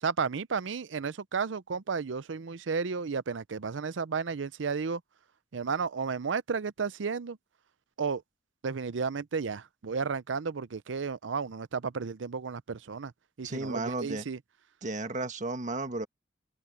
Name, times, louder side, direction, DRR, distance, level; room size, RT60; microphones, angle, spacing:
voice 1, 0.0-5.0 5.5-7.4 8.0-8.2 8.6-13.1 13.4-14.4, right 5 dB, 85° right, 0.6 m, -33 dB
voice 2, 13.4-14.2 14.8-16.1, right 2 dB, 40° right, 1.5 m, -33 dB
head